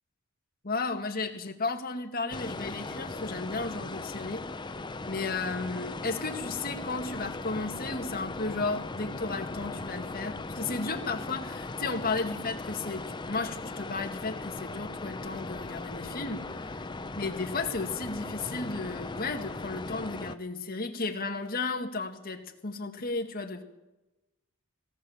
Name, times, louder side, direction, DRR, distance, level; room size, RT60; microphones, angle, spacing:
voice 1, 0.6-4.5 5.1-16.8 17.2-23.6, left 3 dB, 45° left, 4 dB, 2.0 m, -34 dB
sound 1, 2.3-20.3, left 3 dB, 20° left, 0.7 m, -38 dB
19.5 x 18.0 x 7.4 m, 1.0 s
head